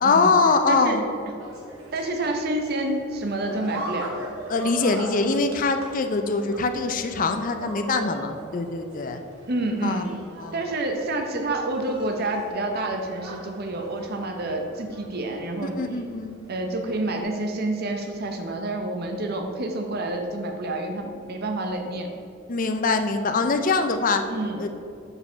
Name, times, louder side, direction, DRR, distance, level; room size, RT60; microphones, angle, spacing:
voice 1, 0.0-1.0 4.5-9.2 9.8-10.0 10.4-10.6 15.6-16.4 22.5-24.2 24.6-24.7, left 4 dB, 40° left, 7 dB, 0.5 m, -23 dB
voice 2, 0.7-1.0 1.9-4.2 9.5-10.2 10.5-15.8 16.5-22.1 24.3-24.6, right 2 dB, 45° right, 3 dB, 0.7 m, -28 dB
Napoli-Via Partenope-Girls unable to go down rocks, 1.4-17.2, right 1 dB, 70° right, 1.6 m, -41 dB
6.8 x 4.7 x 5.6 m, 2.5 s
head